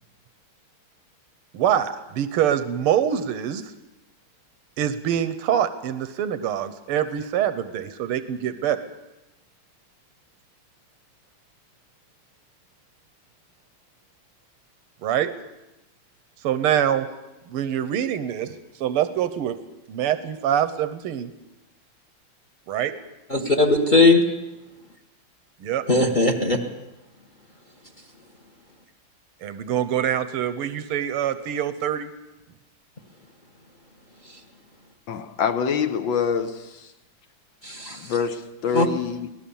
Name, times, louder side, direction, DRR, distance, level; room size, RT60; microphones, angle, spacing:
voice 1, 1.5-3.6 4.8-8.8 15.0-15.3 16.4-17.1 17.5-18.5 18.8-19.6 19.9-21.3 22.7-22.9 25.6-25.8 29.4-32.1, right 10 dB, 90° right, 1.8 m, -24 dB
voice 2, 23.3-24.2 25.9-26.6 37.6-38.1 38.7-38.9, left 2 dB, 25° left, 1.3 m, -18 dB
voice 3, 35.1-36.9 38.0-39.3, left 6 dB, 65° left, 1.7 m, -26 dB
23.0 x 18.0 x 7.1 m
omnidirectional pair, 2.4 m